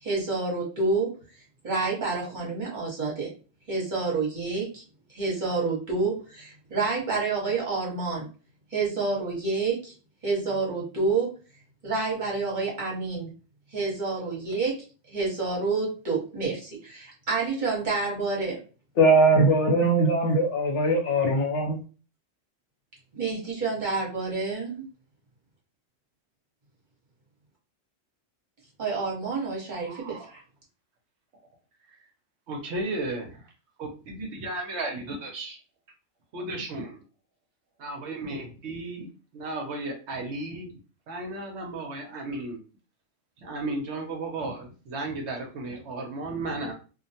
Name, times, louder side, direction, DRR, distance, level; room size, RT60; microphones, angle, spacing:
voice 1, 0.0-1.1 1.6-3.3 3.7-4.8 5.1-8.3 8.7-9.9 10.2-11.3 11.8-13.3 13.7-14.7 15.1-18.6 23.1-24.8 28.8-30.4, right 4 dB, 40° right, -4 dB, 1.0 m, -28 dB
voice 2, 19.0-21.8, right 1 dB, 70° left, 1 dB, 1.0 m, -21 dB
voice 3, 29.7-30.3 31.9-32.0 32.5-33.5 33.8-35.6 36.3-37.0 37.8-40.7 41.1-42.6 43.4-46.7, right 2 dB, 70° right, 2 dB, 0.8 m, -34 dB
2.4 x 2.1 x 2.7 m, 0.35 s
omnidirectional pair, 1.3 m